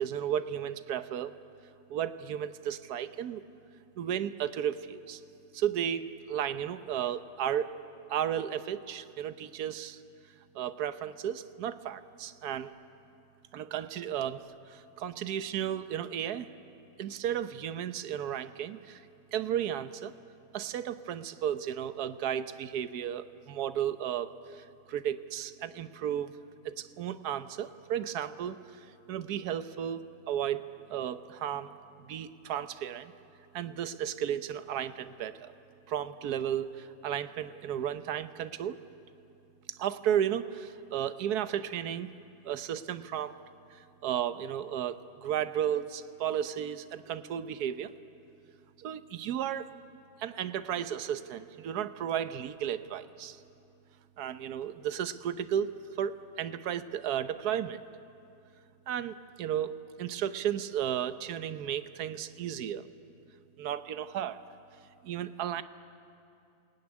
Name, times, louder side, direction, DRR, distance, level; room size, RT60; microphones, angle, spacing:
voice 1, 0.0-1.3 1.9-3.4 4.0-5.2 5.5-7.7 8.1-10.0 10.5-12.7 13.5-16.5 17.0-19.0 19.3-20.1 20.5-26.3 26.6-30.6 30.9-33.1 33.5-35.5 35.9-38.8 39.7-42.1 42.4-43.4 43.7-47.9 48.8-49.7 50.2-53.4 54.2-55.7 56.0-57.8 58.9-62.9 63.6-64.4 65.0-65.6, right 10 dB, 75° right, 12 dB, 1.4 m, -34 dB
27.5 x 20.5 x 9.8 m, 2.6 s
omnidirectional pair, 1.7 m